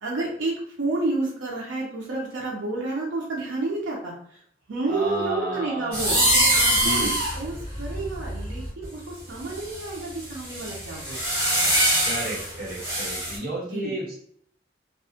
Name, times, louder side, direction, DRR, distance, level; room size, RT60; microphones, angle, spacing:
voice 1, 0.0-4.1 4.7-6.2 6.5-11.4 13.7-13.9, right 2 dB, 75° right, -3 dB, 0.5 m, -30 dB
voice 2, 4.9-6.1 6.7-7.2 12.0-14.2, right 1 dB, 55° right, -8 dB, 1.2 m, -32 dB
sound 1, 5.9-8.8 9.4-13.4, right 1 dB, 15° right, 1.1 m, -24 dB
2.3 x 2.0 x 2.6 m, 0.64 s
head